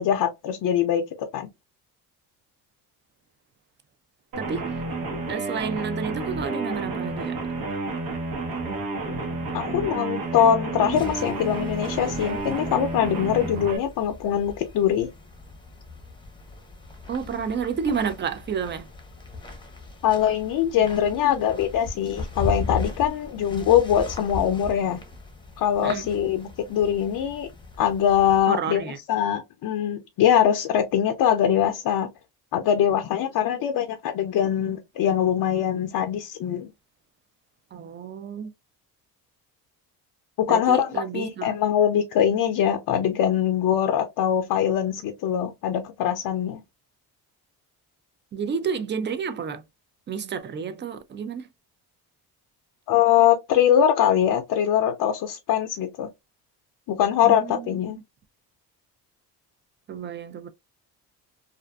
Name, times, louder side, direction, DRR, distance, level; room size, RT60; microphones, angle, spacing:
voice 1, 0.0-1.5 9.5-15.1 20.0-25.0 25.6-27.5 27.8-32.1 32.5-36.7 40.4-46.6 52.9-56.1 56.9-58.0, left 9 dB, 65° left, 0.5 m, -22 dB
sound 1, 4.3-13.8, right 2 dB, 60° right, 0.9 m, -30 dB
voice 2, 4.4-4.7 5.3-7.4 17.1-18.9 25.8-26.0 28.5-29.0 37.7-38.5 40.5-41.5 48.3-49.6 50.1-51.5 57.2-57.9 59.9-60.5, right 6 dB, 30° right, 0.4 m, -30 dB
sound 2, 10.9-28.4, left 3 dB, 10° left, 0.7 m, -38 dB
2.5 x 2.4 x 2.2 m
cardioid pair, 85°, 40 cm